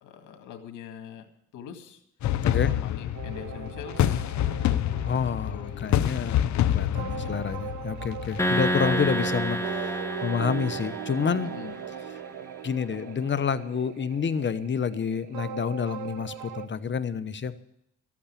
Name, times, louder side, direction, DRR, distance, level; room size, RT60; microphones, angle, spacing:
voice 1, 0.0-2.0 2.6-4.4 5.5-6.4 7.1-7.3 11.4-11.8, left 8 dB, 90° left, 6 dB, 2.1 m, -44 dB
sound 1, 2.2-8.4, left 11 dB, 70° left, 0.8 m, -27 dB
sound 2, 3.1-16.7, right 10 dB, 85° right, 1.0 m, -39 dB
voice 2, 5.0-11.5 12.6-17.5, left 6 dB, 40° left, 12 dB, 1.0 m, -29 dB
sound 3, 8.4-11.9, equal, 10° left, 1.5 m, -29 dB
13.5 x 8.6 x 8.6 m, 0.77 s
cardioid pair, 90°, 30 cm